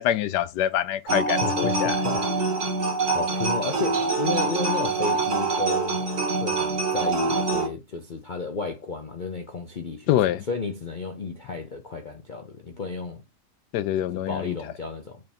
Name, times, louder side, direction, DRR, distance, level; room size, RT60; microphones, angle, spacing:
voice 1, 0.0-2.0 10.1-10.4 13.7-14.6, left 12 dB, 80° left, 1.1 m, -25 dB
sound 1, 1.1-7.7, right 3 dB, 45° right, 1.7 m, -25 dB
voice 2, 1.4-2.6 3.1-6.1 6.4-10.1 10.5-13.2 14.3-15.2, left 4 dB, 60° left, 0.5 m, -33 dB
6.4 x 3.6 x 4.3 m
omnidirectional pair, 1.9 m